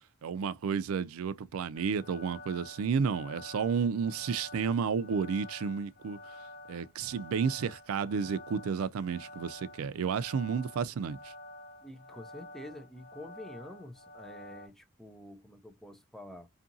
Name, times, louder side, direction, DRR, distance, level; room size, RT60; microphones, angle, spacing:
voice 1, 0.2-6.2 6.7-11.3, right 6 dB, 90° right, 0.4 m, -31 dB
sound 1, 1.7-14.7, left 2 dB, 50° left, 0.8 m, -49 dB
voice 2, 11.8-16.5, left 1 dB, ahead, 0.3 m, -48 dB
2.7 x 2.6 x 2.5 m
head